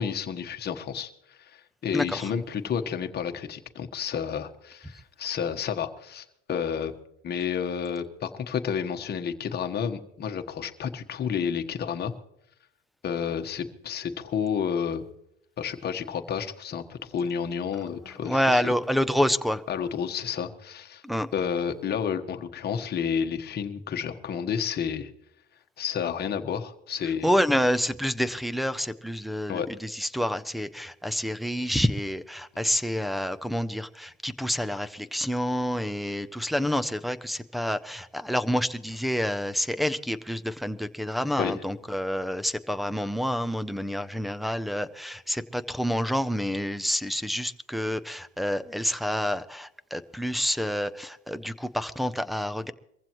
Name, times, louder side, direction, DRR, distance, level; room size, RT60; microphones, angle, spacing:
voice 1, 0.0-6.9 7.2-12.1 13.0-15.0 15.6-18.7 19.7-21.0 21.3-25.1 25.8-27.3 29.5-29.7 41.4-41.6, left 7 dB, 35° left, 5 dB, 1.3 m, -30 dB
voice 2, 18.2-19.6 21.0-21.3 27.2-52.7, equal, ahead, 16 dB, 0.4 m, -28 dB
23.0 x 15.5 x 3.0 m, 0.82 s
cardioid pair, 140°, 30 cm